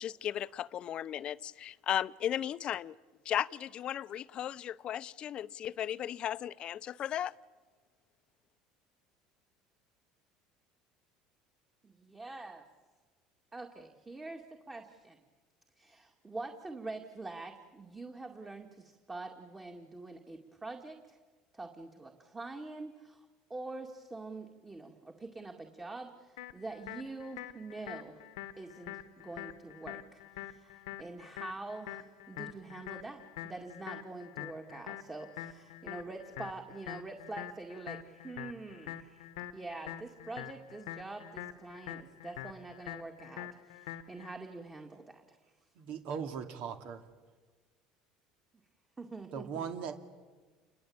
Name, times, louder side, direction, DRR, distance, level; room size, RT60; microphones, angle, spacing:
voice 1, 0.0-2.9 3.2-7.3, left 10 dB, 45° left, 0.7 m, -35 dB
voice 2, 11.8-12.7 13.5-15.2 15.8-21.2 21.5-28.2 28.6-39.3 39.5-45.4 49.0-49.7, right 3 dB, 15° right, 2.2 m, -45 dB
sound 1, 26.4-44.3, left 13 dB, 90° left, 1.3 m, -46 dB
voice 3, 45.8-47.0 49.3-50.0, right 7 dB, 65° right, 2.5 m, -39 dB
29.0 x 21.5 x 8.8 m
supercardioid pair, 105°, 2 cm